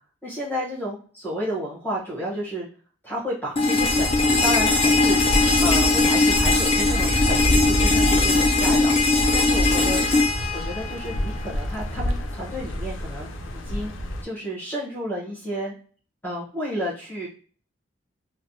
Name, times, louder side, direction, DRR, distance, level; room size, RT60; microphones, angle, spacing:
voice 1, 0.2-2.7 3.0-5.2 5.6-8.9 9.3-10.1 10.5-13.9 14.2-15.7 16.2-17.3, equal, 10° left, -8 dB, 0.9 m, -31 dB
sound 1, 3.6-11.5, left 3 dB, 30° left, 0.6 m, -20 dB
sound 2, 3.7-14.2, equal, 80° left, 0.5 m, -27 dB
3.1 x 2.1 x 2.7 m, 0.42 s
head